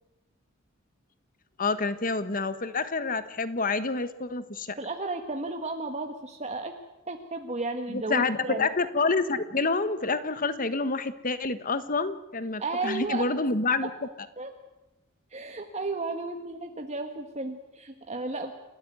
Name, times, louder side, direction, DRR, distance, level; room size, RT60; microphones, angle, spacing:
voice 1, 1.6-4.7 7.9-13.9, left 3 dB, 45° left, 12 dB, 1.4 m, -28 dB
voice 2, 4.8-6.7 7.1-8.7 12.6-13.3 13.8-13.9 14.4-14.5 15.3-18.5, right 3 dB, 35° right, 5 dB, 1.6 m, -33 dB
29.5 x 13.5 x 9.5 m, 1.0 s
head